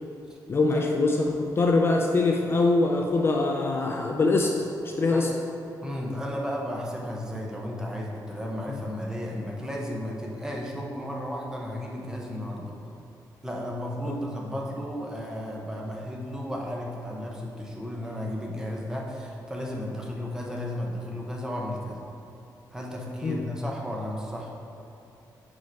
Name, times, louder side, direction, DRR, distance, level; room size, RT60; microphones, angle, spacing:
voice 1, 0.5-4.6 5.0-5.3 14.1-14.2 23.2-23.4, left 3 dB, 35° left, 1 dB, 0.4 m, -23 dB
voice 2, 5.8-12.8 13.4-22.0 22.7-24.5, equal, 10° right, -2 dB, 0.7 m, -34 dB
4.9 x 4.6 x 4.5 m, 2.9 s
wide cardioid pair, 160°, 7 cm